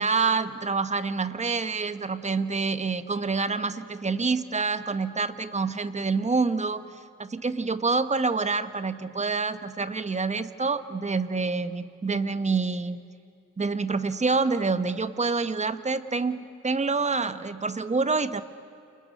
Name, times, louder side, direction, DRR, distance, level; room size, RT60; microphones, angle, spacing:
voice 1, 0.0-13.0 13.6-18.4, right 4 dB, 25° right, 11 dB, 1.3 m, -27 dB
29.0 x 27.5 x 6.6 m, 2.7 s
cardioid pair, 90°, 30 cm